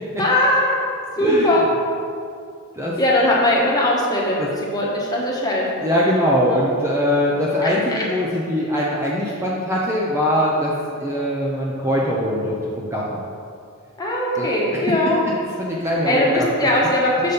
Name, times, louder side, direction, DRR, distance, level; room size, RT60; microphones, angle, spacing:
voice 1, 0.2-0.7 1.2-1.7 3.0-5.7 6.5-6.7 7.6-8.0 14.0-15.2 16.1-17.3, left 1 dB, 20° left, -4 dB, 1.2 m, -20 dB
voice 2, 1.2-1.5 2.8-3.0 4.4-4.5 5.8-13.2 14.4-14.8 15.6-16.5, equal, 10° right, -5 dB, 0.6 m, -22 dB
6.7 x 4.1 x 5.2 m, 2.3 s
head